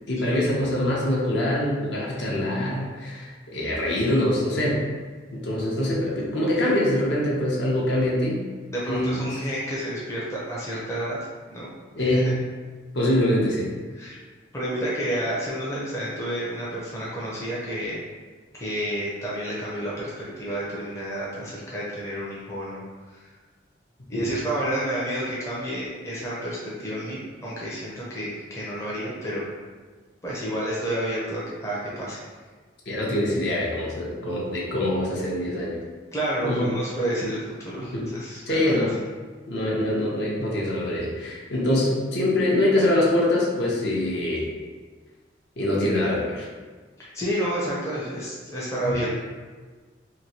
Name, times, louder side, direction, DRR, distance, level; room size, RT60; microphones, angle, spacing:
voice 1, 0.1-4.8 5.3-8.4 8.9-9.3 12.0-12.3 12.9-13.7 24.1-24.3 32.9-35.8 36.4-36.7 37.8-38.1 38.5-38.9 39.5-44.5 45.6-46.5 48.8-49.0, left 1 dB, 65° left, -4 dB, 0.7 m, -24 dB
voice 2, 8.7-11.2 11.5-11.7 12.0-12.3 14.0-14.2 14.5-18.0 18.5-22.8 23.1-23.2 24.1-29.4 30.2-32.2 36.1-38.7 47.0-49.1, right 1 dB, 15° left, -7 dB, 0.5 m, -30 dB
3.0 x 2.6 x 2.8 m, 1.4 s
head